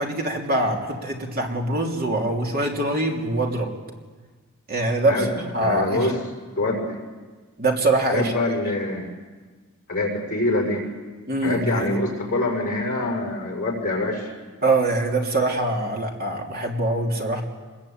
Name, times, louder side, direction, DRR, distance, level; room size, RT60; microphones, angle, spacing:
voice 1, 0.0-3.7 4.7-6.1 7.6-8.3 11.3-11.9 14.6-17.4, right 2 dB, 45° right, 1 dB, 3.3 m, -23 dB
voice 2, 5.6-6.2 6.6-7.0 8.1-9.1 9.9-10.8 11.4-14.3, left 2 dB, 40° left, 0 dB, 6.0 m, -25 dB
25.5 x 21.5 x 8.9 m, 1.4 s
head